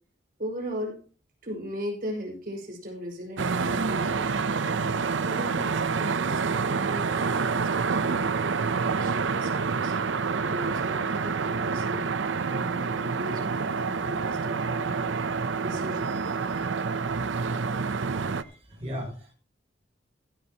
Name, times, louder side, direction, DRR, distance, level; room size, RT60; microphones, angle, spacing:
voice 1, 0.4-1.0 1.4-4.3 5.2-12.1 12.5-16.7 17.4-17.6, equal, 50° right, 2 dB, 5.5 m, -38 dB
sound 1, 3.4-18.4, right 5 dB, 80° right, 0.7 m, -27 dB
voice 2, 18.4-19.3, equal, 30° right, -2 dB, 7.1 m, -37 dB
16.0 x 13.0 x 2.9 m, 0.37 s
head